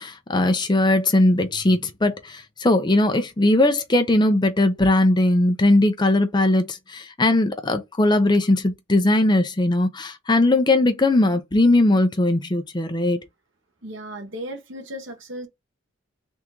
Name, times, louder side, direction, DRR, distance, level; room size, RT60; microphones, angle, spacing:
voice 1, 0.0-13.3, left 2 dB, 20° left, 0.5 m, -19 dB
voice 2, 13.8-15.5, equal, 65° right, 1.1 m, -35 dB
3.6 x 2.5 x 4.4 m
head